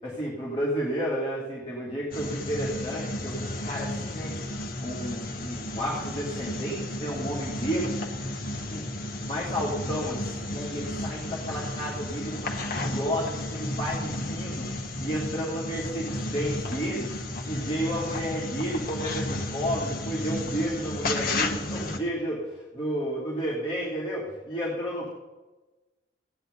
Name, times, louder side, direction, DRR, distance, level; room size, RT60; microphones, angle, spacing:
voice 1, 0.0-4.3 4.8-8.0 8.7-8.8 9.1-14.7 15.0-17.1 17.4-25.1, equal, 25° left, -8 dB, 3.2 m, -32 dB
sound 1, 2.1-22.0, left 1 dB, 50° left, 1.4 m, -33 dB
16.0 x 9.9 x 4.0 m, 1.1 s
head